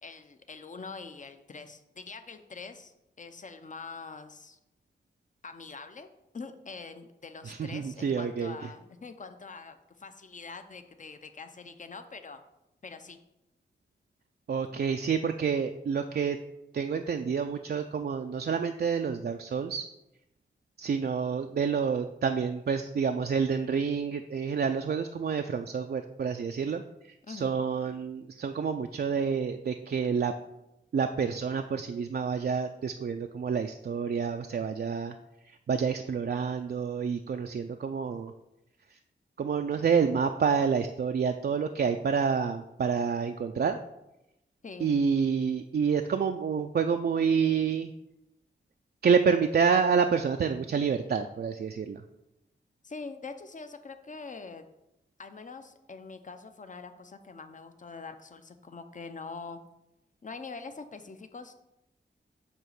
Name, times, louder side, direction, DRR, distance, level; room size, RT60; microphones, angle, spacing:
voice 1, 0.0-4.6 5.4-6.1 6.3-12.4 12.8-13.2 27.3-27.5 44.6-44.9 52.8-54.6 55.2-59.6 60.2-61.5, left 4 dB, 40° left, 8 dB, 0.6 m, -44 dB
voice 2, 7.4-8.5 14.5-16.4 16.7-19.9 20.8-30.3 30.9-35.2 35.5-38.3 38.9-39.0 39.4-43.8 44.8-47.9 49.0-52.0, right 6 dB, 55° right, 6 dB, 0.4 m, -28 dB
8.8 x 3.0 x 6.5 m, 0.89 s
wide cardioid pair, 115°, 19 cm